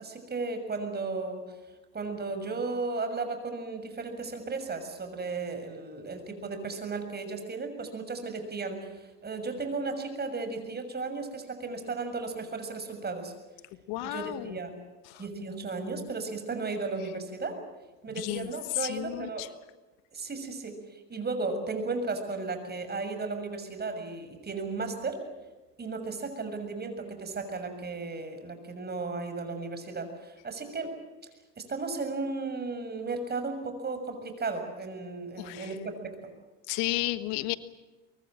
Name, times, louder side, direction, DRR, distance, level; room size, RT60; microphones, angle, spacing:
voice 1, 0.0-1.6 1.9-13.3 14.0-14.7 15.2-17.6 18.0-19.5 20.1-25.2 25.8-30.9 31.6-36.1, right 3 dB, 30° right, 7 dB, 6.9 m, -35 dB
voice 2, 13.9-14.6 15.1-15.2 18.2-19.5 35.4-35.8 36.7-37.6, left 18 dB, 80° left, 13 dB, 1.4 m, -33 dB
24.0 x 23.5 x 7.6 m, 1.2 s
supercardioid pair, 85°, 34 cm